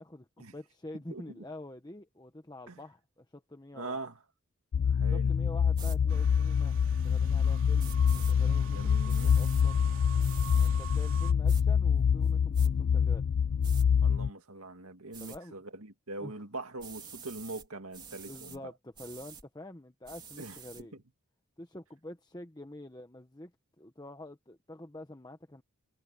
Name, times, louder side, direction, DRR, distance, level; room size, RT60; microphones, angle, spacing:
voice 1, 0.0-4.0 5.1-9.8 10.6-13.2 15.2-15.6 16.2-16.4 18.3-21.0 21.6-23.5 23.8-25.6, left 1 dB, 20° left, 1.1 m, -47 dB
voice 2, 1.1-1.5 2.7-2.8 3.7-4.2 4.9-5.3 8.7-9.4 14.0-18.7 20.4-21.0, right 2 dB, 90° right, 2.2 m, -42 dB
sound 1, 4.7-14.3, left 7 dB, 60° left, 0.3 m, -26 dB
sound 2, 5.7-6.0 7.8-8.3 9.1-9.6 10.2-10.7 11.5-11.6 12.2-12.7 13.6-13.9 15.1-15.4 16.8-17.7 17.9-18.6 18.9-19.4 20.0-20.8, right 6 dB, 20° right, 3.1 m, -48 dB
sound 3, 6.1-11.3, right 9 dB, 65° right, 3.3 m, -47 dB
head